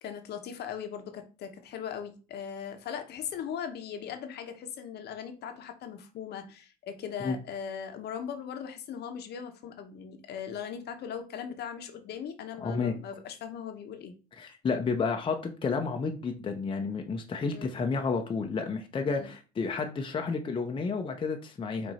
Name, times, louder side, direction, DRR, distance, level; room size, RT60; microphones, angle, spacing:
voice 1, 0.0-14.1 17.4-17.7 19.1-19.3, left 8 dB, 55° left, 0.9 m, -39 dB
voice 2, 12.6-13.0 14.4-21.9, left 4 dB, 25° left, 0.6 m, -31 dB
4.9 x 2.6 x 4.1 m
supercardioid pair, 85°, 21 cm